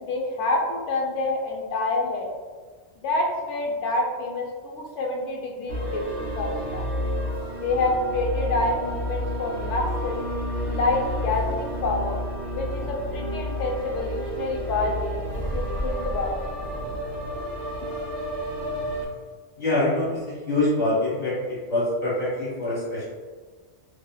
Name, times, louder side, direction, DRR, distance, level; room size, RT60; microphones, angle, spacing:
voice 1, 0.0-2.3 3.0-6.9 7.6-10.2 10.7-12.2 12.5-16.5, left 2 dB, 85° left, -1 dB, 0.9 m, -27 dB
sound 1, 5.7-19.0, equal, 40° right, 0.9 m, -30 dB
voice 2, 19.6-21.3 21.7-23.1, left 2 dB, 70° left, -10 dB, 1.6 m, -24 dB
2.8 x 2.7 x 2.3 m, 1.5 s
omnidirectional pair, 1.2 m